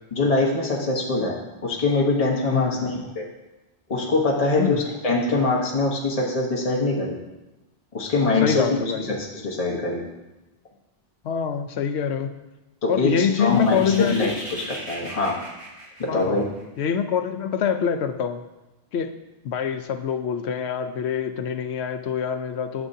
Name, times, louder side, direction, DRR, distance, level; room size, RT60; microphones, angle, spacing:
voice 1, 0.1-3.2 3.9-7.2 7.9-8.7 9.0-10.0 12.8-14.3 14.7-15.4 16.0-16.4, left 3 dB, 35° left, -2 dB, 1.3 m, -23 dB
voice 2, 2.5-2.8 4.5-4.8 8.4-9.0 11.2-12.4 12.9-14.3 16.1-16.4 16.8-18.4 18.9-19.1 19.4-22.9, left 7 dB, 90° left, 9 dB, 0.9 m, -25 dB
sound 1, 13.2-16.8, right 1 dB, 55° right, 1.8 m, -39 dB
12.5 x 7.0 x 2.7 m, 1.0 s
omnidirectional pair, 1.1 m